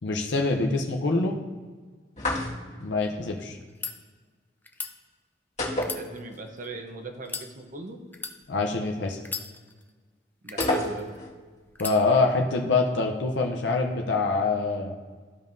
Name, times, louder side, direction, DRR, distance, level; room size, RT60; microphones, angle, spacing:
voice 1, 0.0-1.4 2.8-3.6 8.5-9.2 11.8-15.0, left 3 dB, 80° left, 2 dB, 0.7 m, -25 dB
sound 1, 2.2-2.9 5.6-6.6 6.9-7.0 10.6-11.4, left 1 dB, 40° left, 1.8 m, -29 dB
sound 2, 3.6-3.9 4.6-4.9 5.7-6.7 7.2-7.5 8.1-8.4 9.2-9.9 10.5-11.2 11.8-12.0, left 4 dB, 10° left, 0.5 m, -36 dB
voice 2, 5.8-8.0 10.4-11.1, right 2 dB, 45° right, 5 dB, 0.9 m, -39 dB
14.5 x 5.3 x 2.6 m, 1.5 s
head